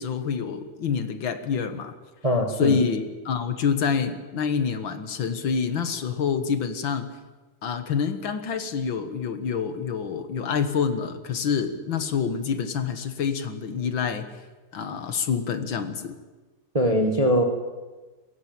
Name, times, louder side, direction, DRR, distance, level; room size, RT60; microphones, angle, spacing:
voice 1, 0.0-1.9 2.6-7.1 7.6-14.3 14.7-16.2, left 6 dB, 50° left, 9 dB, 1.7 m, -27 dB
voice 2, 2.2-2.8 16.7-17.4, equal, 15° right, 4 dB, 1.2 m, -21 dB
21.5 x 17.5 x 9.0 m, 1.2 s
omnidirectional pair, 3.4 m